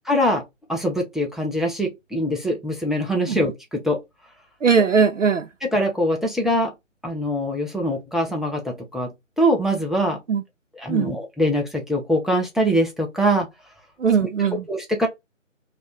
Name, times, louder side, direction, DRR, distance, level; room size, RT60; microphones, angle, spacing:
voice 1, 0.1-0.4 0.7-4.0 5.6-6.7 7.0-10.2 10.8-13.5 14.2-14.3 14.7-15.1, equal, ahead, 0.4 m, -23 dB
voice 2, 4.6-5.5 10.3-10.4 10.9-11.1 14.0-14.7, right 6 dB, 70° right, 0.5 m, -19 dB
2.4 x 2.1 x 3.9 m
figure-of-eight pair, 175°, 39 cm